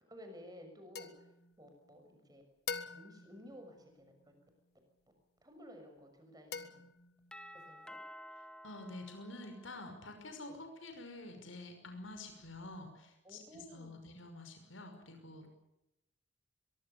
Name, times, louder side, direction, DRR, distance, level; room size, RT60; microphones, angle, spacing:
voice 1, 0.1-1.3 1.6-2.4 2.9-4.1 5.4-6.8 7.5-8.0 10.4-10.6 13.2-14.0, equal, 20° right, 5 dB, 6.4 m, -54 dB
sound 1, 0.9-2.2 2.7-4.5 6.5-7.5, left 6 dB, 50° left, 1.6 m, -46 dB
Doorbell, 7.3-10.1, equal, 5° left, 1.3 m, -52 dB
voice 2, 8.6-15.5, left 2 dB, 80° left, 5 dB, 5.8 m, -48 dB
23.5 x 23.0 x 7.1 m, 0.86 s
head